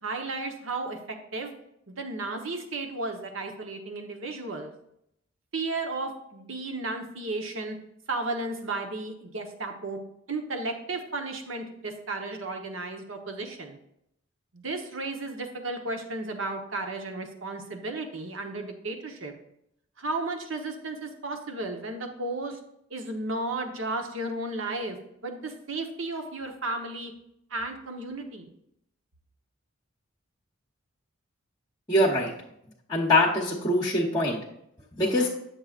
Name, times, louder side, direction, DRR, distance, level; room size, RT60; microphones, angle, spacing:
voice 1, 0.0-1.5 1.9-4.7 5.5-7.8 8.1-10.0 10.3-13.8 14.5-19.3 20.0-22.6 22.9-25.0 25.2-27.1 27.5-28.5, right 2 dB, 70° right, 4 dB, 1.0 m, -34 dB
voice 2, 31.9-32.3 32.9-34.4 35.0-35.3, left 1 dB, 20° left, -2 dB, 0.9 m, -23 dB
8.9 x 6.5 x 2.4 m, 0.76 s
head